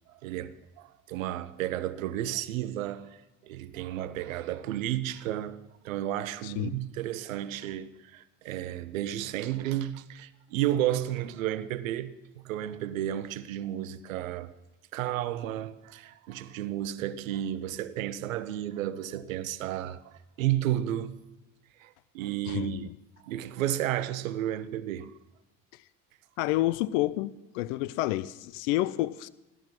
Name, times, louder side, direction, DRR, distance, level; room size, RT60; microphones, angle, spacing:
voice 1, 0.1-3.2 3.4-5.6 5.8-14.5 14.9-21.1 21.8-22.9 23.2-25.1, right 12 dB, 90° right, 0.9 m, -32 dB
voice 2, 6.4-6.7 22.5-22.9 26.4-29.3, left 16 dB, 75° left, 0.6 m, -29 dB
15.5 x 12.5 x 6.0 m
hypercardioid pair, 75°, 39 cm